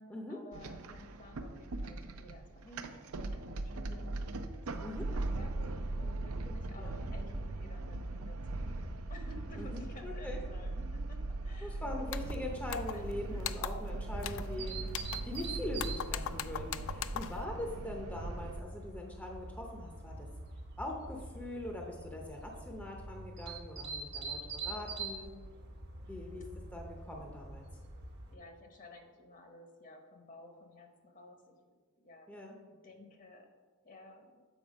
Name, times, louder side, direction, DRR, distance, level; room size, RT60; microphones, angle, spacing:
voice 1, 0.0-4.5 4.8-5.7 6.0-11.8 12.9-13.4 17.2-17.6 26.0-26.4 28.3-31.8 32.0-32.3 32.7-33.5 33.8-34.4, left 1 dB, 40° left, 4 dB, 0.9 m, -54 dB
sound 1, 0.5-18.6, right 2 dB, 70° right, 0.5 m, -39 dB
voice 2, 9.6-10.4 11.6-20.3 20.8-25.3 26.1-27.7 32.3-32.6, left 1 dB, 5° left, 1 dB, 0.6 m, -42 dB
sound 2, 12.1-12.4 12.7-13.1 13.4-13.9 14.2-14.5 14.9-15.5 15.8-17.4, left 9 dB, 60° left, 0.3 m, -40 dB
sound 3, 14.6-28.3, right 3 dB, 50° right, 0.9 m, -45 dB
7.2 x 4.3 x 5.1 m, 1.5 s
head